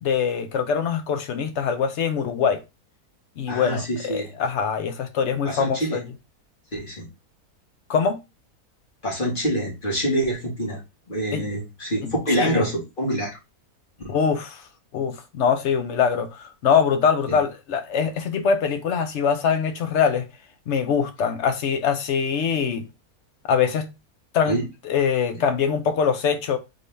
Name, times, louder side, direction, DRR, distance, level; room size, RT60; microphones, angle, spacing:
voice 1, 0.0-2.6 3.4-6.1 7.9-8.2 11.3-11.4 12.0-12.7 14.1-14.6 14.9-20.3 20.7-22.9 23.5-23.9 24.3-24.6 24.8-26.6, left 6 dB, 60° left, 0.9 m, -23 dB
voice 2, 3.5-4.3 5.4-6.0 6.7-7.1 9.0-10.8 11.1-13.3 14.0-14.2 17.3-17.4 24.5-24.6 25.3-25.4, right 1 dB, 35° left, 2.1 m, -26 dB
3.8 x 3.7 x 3.3 m
omnidirectional pair, 1.6 m